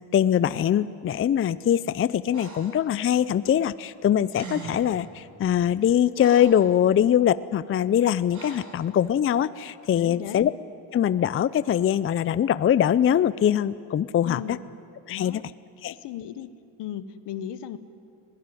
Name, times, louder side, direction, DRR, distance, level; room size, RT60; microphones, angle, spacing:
voice 1, 0.0-10.5 10.9-14.4 15.1-15.4 15.8-15.9, left 10 dB, 30° left, 16 dB, 0.5 m, -22 dB
Breathing, 2.3-2.8 4.0-4.1 4.3-5.0 5.7-6.7 8.3-8.8, right 3 dB, 40° right, 4.5 m, -41 dB
voice 2, 9.9-10.4 14.2-14.6 15.1-15.4 15.8-16.5 16.8-17.8, left 10 dB, 70° left, 13 dB, 1.2 m, -36 dB
20.5 x 18.5 x 9.9 m, 2.4 s
cardioid pair, 90°, 44 cm